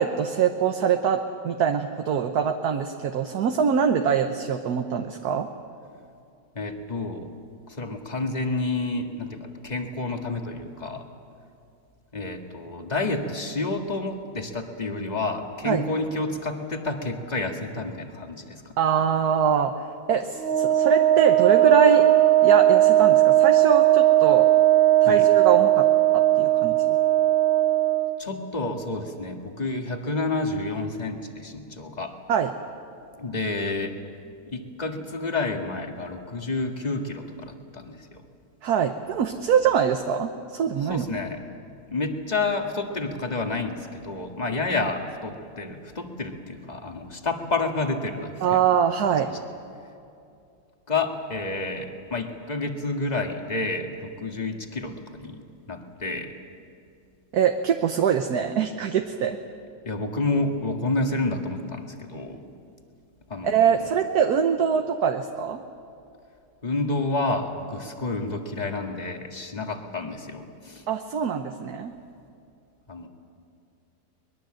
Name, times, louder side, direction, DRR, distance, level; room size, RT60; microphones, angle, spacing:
voice 1, 0.0-5.5 15.6-15.8 18.8-19.7 20.1-22.1 22.4-24.5 25.0-25.9 26.1-26.8 32.3-32.5 38.6-41.1 48.4-49.3 57.3-59.4 63.4-65.6 70.9-71.9, right 7 dB, 60° right, 6 dB, 1.3 m, -23 dB
voice 2, 6.6-7.3 7.7-11.0 12.1-18.7 25.0-25.2 28.2-32.2 33.2-34.0 34.5-38.2 40.8-41.4 41.9-48.6 49.0-49.2 50.9-55.4 55.7-56.3 59.9-62.4 63.3-63.9 66.6-70.9 72.9-73.1, left 3 dB, 25° left, 3 dB, 1.8 m, -29 dB
Wind instrument woodwind instrument, 20.4-28.2, right 14 dB, 45° right, 0.9 m, -18 dB
24.0 x 21.0 x 7.6 m, 2.5 s
omnidirectional pair, 2.0 m